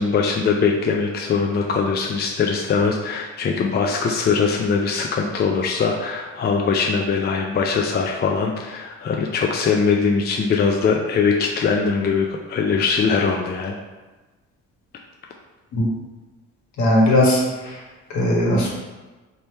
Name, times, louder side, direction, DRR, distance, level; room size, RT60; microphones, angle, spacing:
voice 1, 0.0-13.7, left 5 dB, 35° left, 1 dB, 0.4 m, -21 dB
voice 2, 16.8-17.8 18.1-18.7, left 1 dB, 70° left, -3 dB, 1.4 m, -18 dB
3.3 x 2.9 x 4.3 m, 1.2 s
cardioid pair, 90°, 30 cm